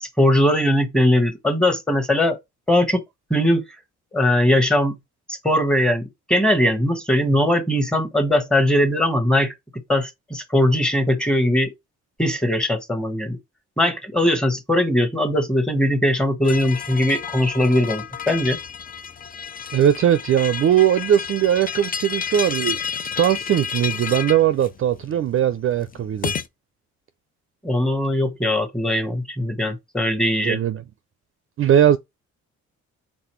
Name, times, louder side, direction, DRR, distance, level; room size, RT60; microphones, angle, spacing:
voice 1, 0.0-2.4 2.7-3.0 3.3-3.6 4.1-4.9 5.3-9.5 9.9-11.7 12.2-13.4 13.8-18.6 27.6-30.6, left 1 dB, 5° left, 1.2 m, -20 dB
sound 1, 16.4-26.5, left 7 dB, 30° left, 0.5 m, -31 dB
voice 2, 19.7-26.3 30.4-30.8 31.6-32.0, right 10 dB, 45° right, 0.4 m, -19 dB
4.0 x 3.7 x 3.1 m
cardioid pair, 90°, 30 cm